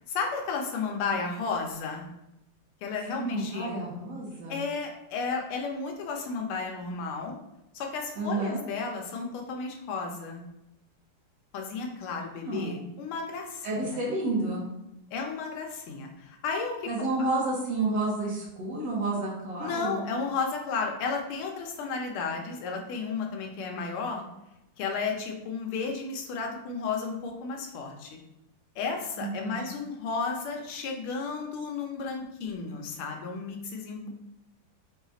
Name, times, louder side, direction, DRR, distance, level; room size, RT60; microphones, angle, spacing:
voice 1, 0.1-2.1 2.8-3.7 4.5-7.4 7.7-10.4 11.5-14.0 15.1-16.8 19.6-24.2 24.8-28.2 28.8-34.1, left 4 dB, 90° left, 1 dB, 1.7 m, -33 dB
voice 2, 3.1-4.6 8.2-8.6 12.4-12.8 13.6-14.7 16.9-20.1 29.2-29.6, right 2 dB, 65° right, -4 dB, 1.7 m, -30 dB
4.8 x 2.4 x 3.9 m, 0.90 s
omnidirectional pair, 2.3 m